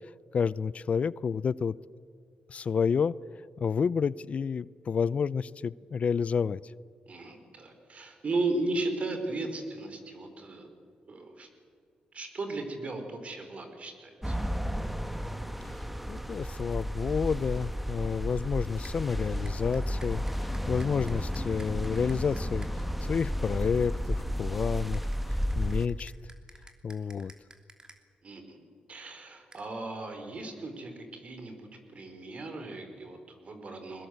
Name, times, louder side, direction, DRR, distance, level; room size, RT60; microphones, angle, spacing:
voice 1, 0.3-1.7 2.5-3.1 3.6-6.6 16.1-25.1 25.6-26.1 26.8-27.3, left 6 dB, 55° left, 21 dB, 0.5 m, -30 dB
voice 2, 7.1-10.7 11.1-11.5 12.1-14.4 28.2-28.6 28.9-34.1, right 2 dB, 50° right, 6 dB, 4.9 m, -36 dB
sound 1, 14.2-25.9, equal, 5° right, 1.5 m, -33 dB
sound 2, 18.8-19.0 19.5-22.7 24.9-28.0 29.5-29.7, right 2 dB, 25° right, 3.0 m, -53 dB
22.5 x 20.5 x 8.0 m, 2.3 s
cardioid pair, 65°, 3 cm